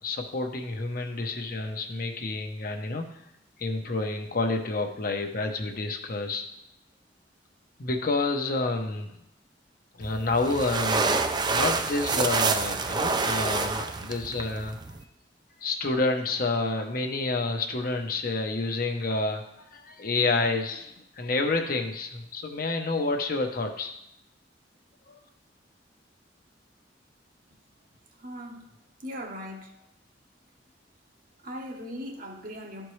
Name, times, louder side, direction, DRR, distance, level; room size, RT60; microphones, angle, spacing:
voice 1, 0.0-3.2 3.6-6.4 7.8-9.1 9.9-15.0 15.6-23.9 25.1-25.2, left 3 dB, 55° left, 0.8 m, -29 dB
sound 1, 10.0-15.0, right 4 dB, 25° right, 0.4 m, -27 dB
voice 2, 28.2-28.7 29.0-29.7 31.4-32.9, equal, 50° right, 1.0 m, -39 dB
13.0 x 4.4 x 3.2 m
head